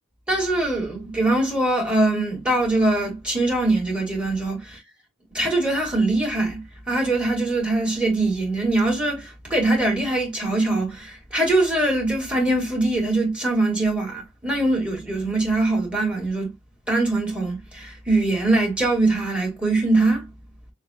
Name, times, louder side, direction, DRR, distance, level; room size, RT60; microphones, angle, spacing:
voice 1, 0.3-4.8 5.3-16.5 16.9-20.3, right 2 dB, 5° right, 2.1 m, -22 dB
6.3 x 2.3 x 2.8 m
head